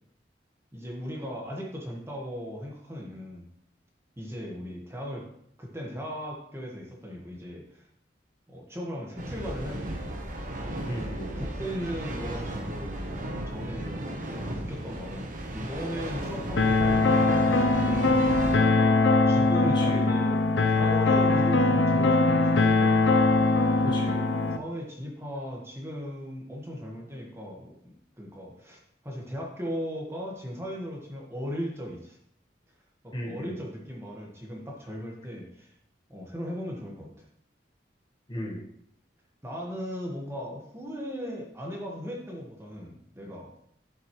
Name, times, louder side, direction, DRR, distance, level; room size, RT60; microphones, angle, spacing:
voice 1, 0.7-3.5 4.2-5.3 5.6-7.8 8.5-10.2 11.3-14.1 14.3-18.6 19.3-22.9 24.4-32.2 33.0-35.7 36.1-37.1 39.4-43.5, equal, 15° right, -1 dB, 1.6 m, -37 dB
sound 1, 9.2-18.6, right 1 dB, 45° right, 1.1 m, -35 dB
voice 2, 10.9-11.3 19.7-20.1 23.8-24.2 33.1-33.6 38.3-38.6, equal, 25° left, -1 dB, 1.4 m, -35 dB
sound 2, 16.6-24.6, left 2 dB, 85° left, 0.7 m, -22 dB
11.0 x 7.6 x 3.2 m, 0.72 s
head